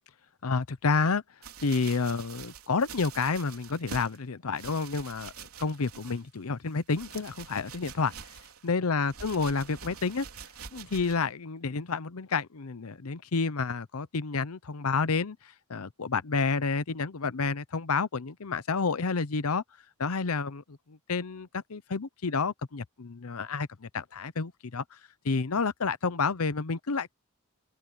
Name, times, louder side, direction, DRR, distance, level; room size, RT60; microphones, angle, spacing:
voice 1, 0.4-1.2 1.6-8.1 8.6-10.3 10.7-19.6 20.0-25.0 25.2-27.1, left 4 dB, 80° left, 0.8 m, -30 dB
sound 1, 1.4-4.2 4.5-6.4 6.7-8.7 9.1-11.3 11.9-12.0, right 6 dB, 85° right, 3.5 m, -46 dB
open air
head